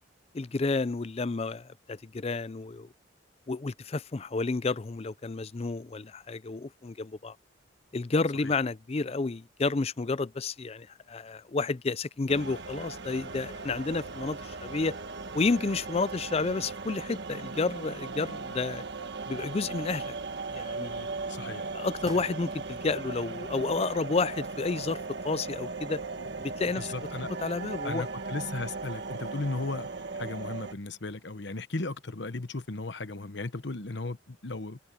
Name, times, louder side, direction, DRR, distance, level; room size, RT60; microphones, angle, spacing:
voice 1, 0.3-2.9 3.5-7.3 7.9-15.0 15.3-18.8 19.3-20.1 20.5-21.1 21.7-26.0 26.4-26.9 27.2-28.1, left 3 dB, 30° left, 0.4 m, -31 dB
sound 1, 12.3-30.7, right 3 dB, 55° right, 1.7 m, -38 dB
sound 2, 21.1-21.3 21.7-21.8 22.0-24.0 24.3-24.4, right 3 dB, 20° right, 7.6 m, -54 dB
voice 2, 21.3-21.6 22.1-22.2 26.8-27.3 27.8-29.9 30.2-34.8, left 3 dB, 55° left, 1.1 m, -36 dB
head